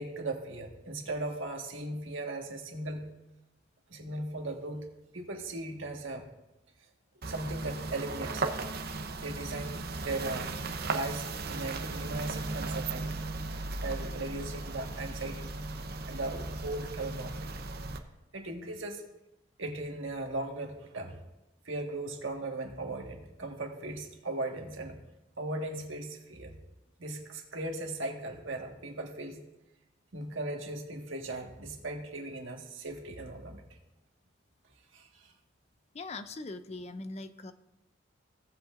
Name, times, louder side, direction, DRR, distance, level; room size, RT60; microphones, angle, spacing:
voice 1, 0.0-3.0 3.9-4.8 5.1-6.3 7.2-8.5 9.2-10.5 10.9-13.3 13.8-15.5 16.1-17.5 18.3-19.0 19.6-21.2 21.6-24.9 25.4-26.5 27.0-29.4 30.1-33.6 34.9-35.3, right 2 dB, 85° right, 2 dB, 1.6 m, -38 dB
sound 1, 7.2-18.0, right 3 dB, 50° right, 0.8 m, -36 dB
voice 2, 35.9-37.5, left 3 dB, 35° left, 10 dB, 0.4 m, -41 dB
17.0 x 7.8 x 2.5 m, 0.96 s
head